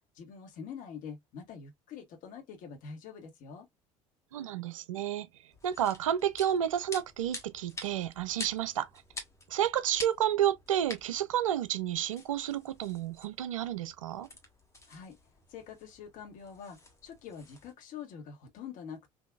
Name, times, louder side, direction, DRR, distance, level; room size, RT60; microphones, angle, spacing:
voice 1, 0.1-3.7 14.9-15.2 15.5-19.1, left 6 dB, 55° left, 1.3 m, -45 dB
voice 2, 4.3-5.3 5.6-8.9 9.5-14.3, right 10 dB, 80° right, 0.5 m, -31 dB
sound 1, 5.5-17.7, left 2 dB, 15° left, 1.4 m, -48 dB
3.7 x 2.7 x 2.3 m
hypercardioid pair, 65°, 17 cm